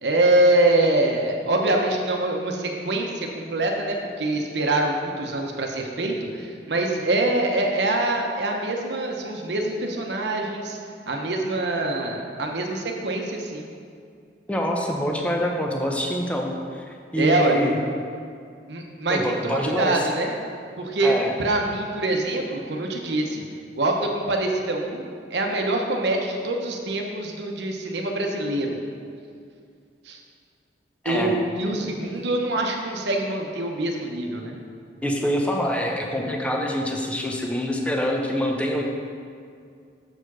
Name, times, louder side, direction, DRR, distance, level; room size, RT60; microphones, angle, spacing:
voice 1, 0.0-10.8 11.1-13.7 17.2-17.7 18.7-20.4 20.8-23.4 23.8-28.8 30.1-30.2 31.0-34.6, right 2 dB, 70° right, 1 dB, 0.9 m, -24 dB
voice 2, 14.5-17.8 19.1-20.0 21.0-21.3 31.0-31.3 31.6-32.1 35.0-38.8, equal, 5° left, 0 dB, 0.7 m, -26 dB
6.6 x 4.7 x 6.0 m, 2.3 s
head